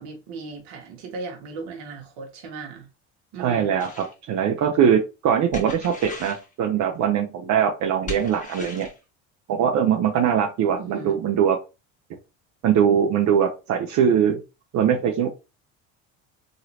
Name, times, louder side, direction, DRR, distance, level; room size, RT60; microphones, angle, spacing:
voice 1, 0.0-2.8 3.3-3.7 10.8-11.1, right 4 dB, 75° right, 1.1 m, -37 dB
voice 2, 3.4-8.9 9.5-11.6 12.6-14.4 14.7-15.3, right 8 dB, 50° right, 0.7 m, -21 dB
sound 1, 3.8-4.1 5.5-6.5 8.1-9.0, left 3 dB, 20° left, 1.5 m, -37 dB
3.0 x 2.7 x 2.8 m
hypercardioid pair, 75°, 36 cm